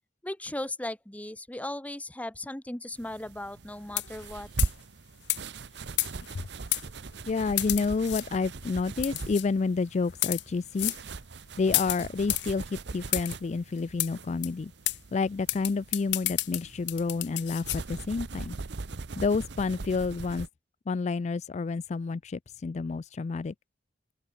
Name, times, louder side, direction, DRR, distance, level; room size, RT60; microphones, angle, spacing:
voice 1, 0.2-4.5, left 1 dB, 10° left, 0.9 m, -37 dB
sound 1, 3.0-20.5, right 3 dB, 70° right, 0.8 m, -40 dB
sound 2, 3.9-4.3 4.6-4.8 5.3-5.4 6.0-6.3 6.7-6.8 7.6-8.3 9.0-9.5 10.1-10.4 10.8-11.0 11.7-12.5 13.1-13.4 14.0-14.1 14.4-14.5 14.9-15.0 15.5-17.8, left 18 dB, 70° left, 0.7 m, -30 dB
voice 2, 7.3-10.9 11.6-14.7 15.1-18.6 19.2-20.5 20.9-23.5, left 4 dB, 40° left, 0.4 m, -29 dB
open air
head